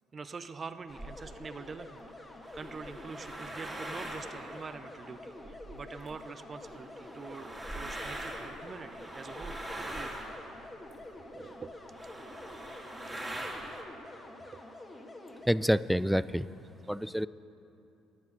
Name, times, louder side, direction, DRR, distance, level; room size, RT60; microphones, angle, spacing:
voice 1, 0.1-2.0 2.5-10.3 11.2-11.8 14.5-14.6, right 4 dB, 40° right, 12 dB, 0.7 m, -45 dB
sound 1, 0.9-15.5, left 2 dB, 20° left, 1.7 m, -48 dB
sound 2, 0.9-1.4 2.2-6.1 6.6-11.2 11.6-11.7 11.9-13.8, right 1 dB, 15° right, 2.5 m, -42 dB
voice 2, 15.5-16.5 16.9-17.3, equal, ahead, 17 dB, 0.3 m, -27 dB
14.0 x 10.5 x 5.4 m, 2.8 s
hypercardioid pair, 55°, 0 cm